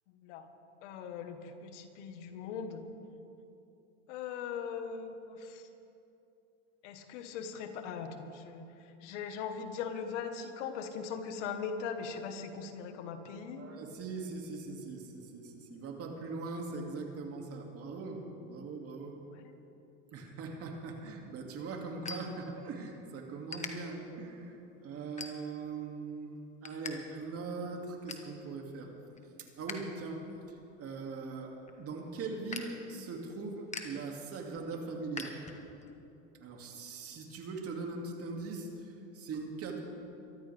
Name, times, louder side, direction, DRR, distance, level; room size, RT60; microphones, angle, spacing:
voice 1, 0.8-2.8 4.1-5.7 6.8-13.7 19.2-19.5, left 6 dB, 70° left, 7 dB, 1.6 m, -40 dB
voice 2, 13.6-19.2 20.1-28.9 29.4-35.3 36.4-39.8, right 3 dB, 40° right, 1 dB, 2.6 m, -41 dB
sound 1, 20.9-23.0 23.3-23.7 24.3-24.5 25.0-25.7 26.1-26.9 27.2-27.3 27.7-28.3 28.8-29.8 30.1-35.9, left 4 dB, 20° left, 1.5 m, -45 dB
23.0 x 14.0 x 3.5 m, 2.9 s
hypercardioid pair, 105°, 37 cm